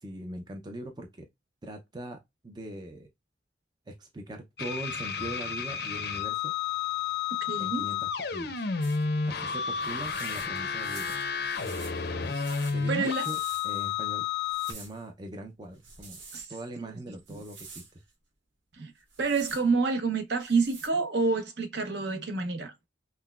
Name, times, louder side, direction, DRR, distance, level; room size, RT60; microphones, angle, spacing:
voice 1, 0.0-1.3 1.6-3.1 3.9-6.5 7.6-8.7 9.2-11.1 12.7-12.9 13.2-13.4 13.6-14.3 14.6-16.2 16.5-17.8, right 1 dB, 20° right, 0.4 m, -41 dB
sound 1, 4.6-14.7, left 6 dB, 55° left, 0.6 m, -31 dB
voice 2, 7.5-7.9 12.3-12.4 12.9-13.3 16.3-16.5 16.9-17.0 17.3-17.4 18.8-18.9 19.2-22.7, right 4 dB, 60° right, 0.8 m, -28 dB
sound 2, 8.8-9.0 9.8-13.9 14.4-15.0 15.7-16.5 17.3-17.9 19.0-19.6 20.4-20.9, right 4 dB, 85° right, 1.2 m, -48 dB
5.6 x 2.1 x 2.3 m
head